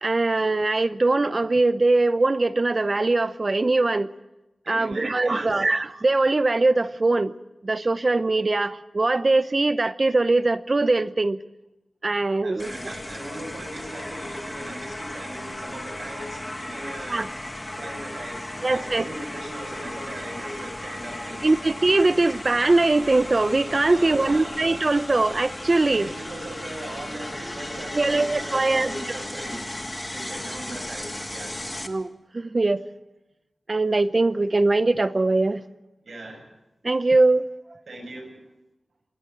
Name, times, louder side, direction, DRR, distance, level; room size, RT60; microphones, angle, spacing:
voice 1, 0.0-4.1 4.7-7.3 7.6-11.4 12.0-12.9 17.1-17.3 18.6-19.0 21.4-26.1 27.9-28.9 31.9-32.8 33.7-35.6 36.8-37.5, right 2 dB, 40° right, 13 dB, 0.8 m, -21 dB
voice 2, 4.7-5.6 12.4-17.4 17.8-21.6 23.9-24.6 25.9-29.7 30.1-31.6 36.0-36.5 37.9-38.5, right 1 dB, 70° right, 1 dB, 7.0 m, -38 dB
sound 1, 12.6-31.9, left 1 dB, 20° left, 1.4 m, -36 dB
27.0 x 11.0 x 8.9 m, 0.97 s
wide cardioid pair, 75°, 0 cm